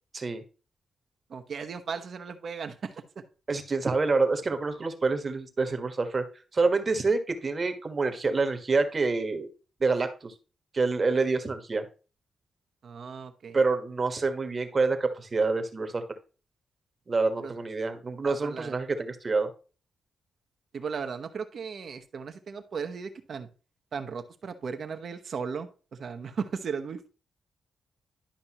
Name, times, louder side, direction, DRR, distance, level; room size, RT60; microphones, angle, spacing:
voice 1, 1.3-2.9 12.8-13.6 17.4-17.5 18.2-18.7 20.7-23.5 23.9-27.1, right 6 dB, 60° right, 7 dB, 1.0 m, -36 dB
voice 2, 3.5-6.2 6.5-9.5 9.8-10.3 10.7-11.8 13.5-16.0 17.1-19.5, right 3 dB, 40° right, 8 dB, 1.3 m, -27 dB
11.5 x 5.2 x 3.0 m, 0.35 s
cardioid pair, 80°, 0 cm